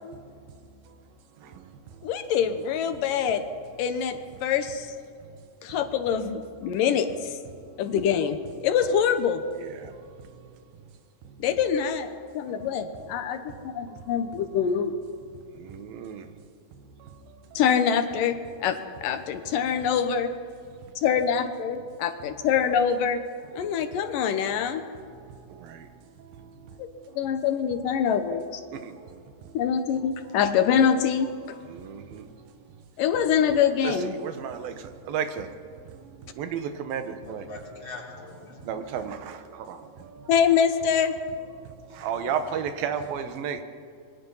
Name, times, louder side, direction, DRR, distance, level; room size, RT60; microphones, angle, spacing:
voice 1, 2.0-3.4 3.8-4.9 5.6-7.3 7.8-9.4 11.4-15.0 17.6-20.3 21.0-23.2 23.5-24.8 27.2-28.6 29.5-31.6 33.0-34.1 40.3-41.1, left 7 dB, 75° left, 9 dB, 2.5 m, -25 dB
voice 2, 15.7-16.2 28.8-28.9 31.7-32.2 33.8-34.7 35.1-35.5 36.4-37.4 38.7-39.4 39.7-39.8 42.0-43.6, right 7 dB, 90° right, 9 dB, 3.1 m, -32 dB
voice 3, 37.3-38.8 41.9-42.5, left 3 dB, 35° left, -3 dB, 4.8 m, -43 dB
26.5 x 22.0 x 5.6 m, 2.3 s
omnidirectional pair, 4.1 m